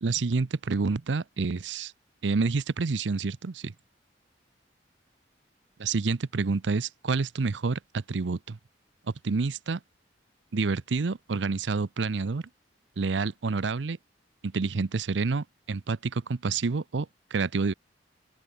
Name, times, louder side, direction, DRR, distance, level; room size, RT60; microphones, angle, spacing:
voice 1, 0.0-1.9 2.2-3.7 5.8-8.6 9.2-9.8 10.5-12.4 13.0-14.0 14.4-17.7, right 4 dB, 80° right, 0.6 m, -28 dB
open air
head